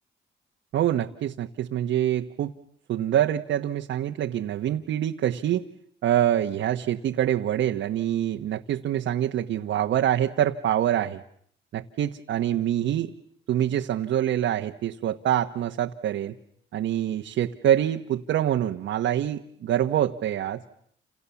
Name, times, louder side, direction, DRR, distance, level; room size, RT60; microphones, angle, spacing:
voice 1, 0.7-2.5 2.9-5.6 6.0-11.2 11.7-13.1 13.5-16.3 16.7-20.6, right 11 dB, 70° right, 3 dB, 1.2 m, -25 dB
29.0 x 28.0 x 7.1 m, 0.66 s
cardioid pair, 90°, 20 cm